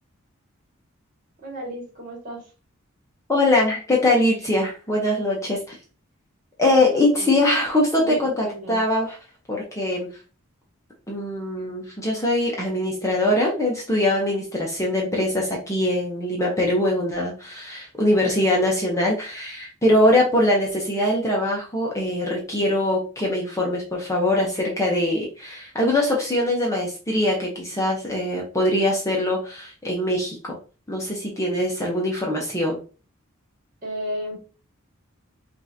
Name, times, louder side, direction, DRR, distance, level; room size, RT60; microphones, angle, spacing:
voice 1, 1.4-2.4 6.8-7.4 8.0-8.8 33.8-34.4, equal, 40° right, -2 dB, 2.0 m, -34 dB
voice 2, 3.3-5.8 6.6-9.2 9.5-10.1 11.1-30.6 30.9-32.8, left 1 dB, 15° left, -2 dB, 0.8 m, -22 dB
5.4 x 2.6 x 2.8 m, 0.36 s
head